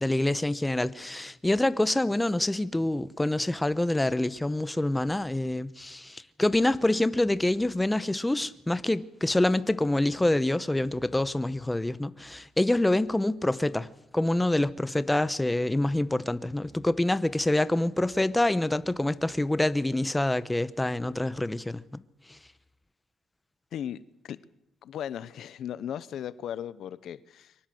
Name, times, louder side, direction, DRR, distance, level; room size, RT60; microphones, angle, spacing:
voice 1, 0.0-21.8, left 1 dB, 10° left, 1.0 m, -26 dB
voice 2, 23.7-24.4 24.8-27.5, left 10 dB, 70° left, 0.8 m, -37 dB
23.5 x 19.0 x 7.8 m
cardioid pair, 90°, 0 cm